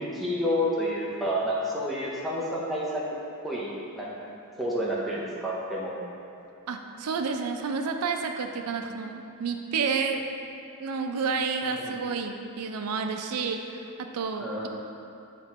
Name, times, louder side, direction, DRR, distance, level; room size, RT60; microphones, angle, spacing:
voice 1, 0.0-3.2 3.4-4.1 4.6-6.1 11.7-12.0 14.4-14.7, equal, ahead, -6 dB, 0.6 m, -30 dB
voice 2, 6.7-10.3 10.8-14.7, right 5 dB, 80° right, 5 dB, 0.4 m, -30 dB
7.7 x 3.0 x 4.1 m, 2.6 s
head